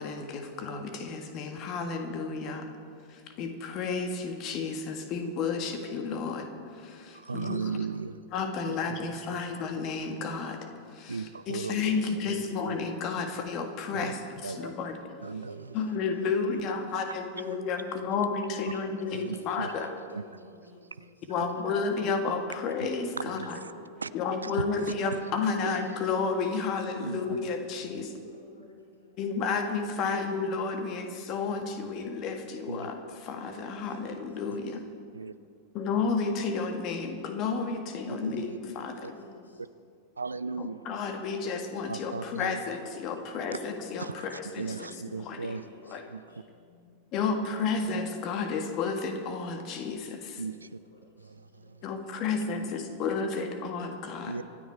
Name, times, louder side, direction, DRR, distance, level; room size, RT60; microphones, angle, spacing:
voice 1, 0.0-2.7 3.1-7.8 8.3-15.1 15.7-19.9 21.3-23.6 24.1-28.1 29.2-34.8 35.7-39.3 40.6-44.9 45.1-45.6 45.8-46.0 47.1-50.4 51.8-54.4, left 4 dB, 40° left, 1.7 m, -32 dB
voice 2, 7.1-8.2 8.7-8.8 9.3-9.4 11.1-12.8 13.9-14.1 14.4-14.8 15.2-15.8 19.1-19.7 20.1-20.2 21.0-21.1 23.2-23.7 24.0-24.1 24.4-25.2 27.0-27.2 27.9-28.0 32.7-32.9 35.1-35.3 38.2-38.6 39.0-39.1 40.2-40.8 41.9-42.6 44.0-46.2 50.4-50.8 51.2-51.8 54.3-54.4, right 4 dB, 75° right, 0.4 m, -37 dB
voice 3, 15.3-17.3 18.6-21.3 22.4-24.8 26.8-29.3 33.5-34.8 37.3-39.6 42.2-42.3 45.2-46.9 49.2-50.7 50.9-52.3, equal, 75° left, 3.1 m, -53 dB
25.0 x 9.5 x 4.6 m
figure-of-eight pair, 90°, 0 cm